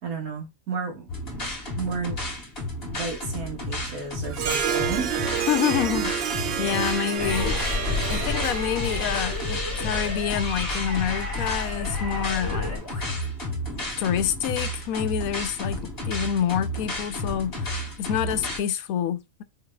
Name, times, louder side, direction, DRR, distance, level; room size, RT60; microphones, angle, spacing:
voice 1, 0.0-1.0 1.8-2.2 2.9-5.5, right 5 dB, 90° right, 2.0 m, -32 dB
sound 1, 1.1-18.6, left 1 dB, 45° left, 1.9 m, -32 dB
Harp, 4.3-10.0, right 8 dB, 65° right, 0.6 m, -30 dB
voice 2, 5.5-7.5 8.1-12.8 14.0-15.8 16.1-19.4, left 9 dB, 85° left, 1.0 m, -27 dB
sound 2, 7.2-12.8, left 2 dB, 20° right, 1.7 m, -30 dB
5.6 x 3.5 x 2.2 m
omnidirectional pair, 1.5 m